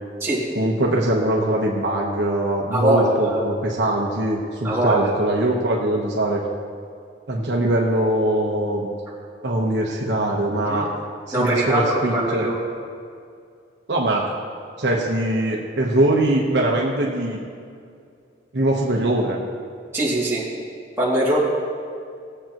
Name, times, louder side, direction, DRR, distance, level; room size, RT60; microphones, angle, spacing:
voice 1, 0.5-6.4 7.3-8.9 9.4-10.9 11.3-12.5 13.9-14.3 14.8-17.4 18.5-19.4, right 1 dB, 65° right, -2 dB, 1.1 m, -22 dB
voice 2, 2.7-3.4 4.6-5.1 10.7-10.8 11.3-12.6 19.9-20.4 21.0-21.4, right 1 dB, 15° right, -8 dB, 2.6 m, -21 dB
18.5 x 7.7 x 3.0 m, 2.3 s
head